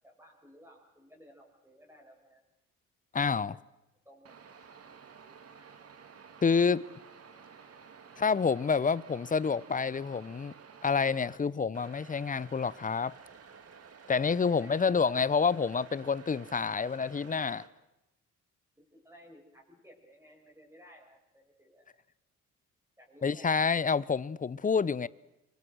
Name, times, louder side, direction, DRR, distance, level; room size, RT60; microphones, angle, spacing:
voice 1, 0.0-2.4 4.0-4.3 14.4-15.0 18.8-21.9 23.0-23.9, equal, 10° right, 7.5 m, -56 dB
voice 2, 3.1-3.6 6.4-6.8 8.2-10.5 10.8-13.1 14.1-17.6 23.2-25.1, left 5 dB, 25° left, 0.7 m, -28 dB
sound 1, 4.3-11.4 11.7-17.7, right 6 dB, 50° right, 2.7 m, -53 dB
25.0 x 24.0 x 6.3 m
cardioid pair, 90°, 30 cm